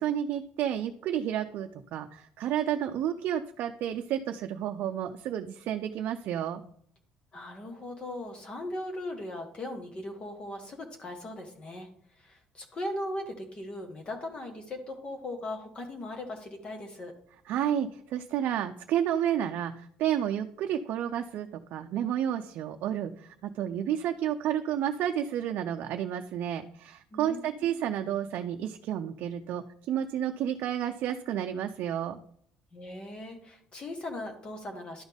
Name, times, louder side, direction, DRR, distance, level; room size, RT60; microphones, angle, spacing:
voice 1, 0.0-6.6 17.5-32.2, right 10 dB, 65° right, 4 dB, 0.5 m, -31 dB
voice 2, 7.3-11.9 12.2-17.1 27.1-27.8 32.7-35.0, left 1 dB, 30° left, 4 dB, 1.2 m, -39 dB
12.0 x 4.0 x 3.5 m, 0.65 s
cardioid pair, 130°, 3 cm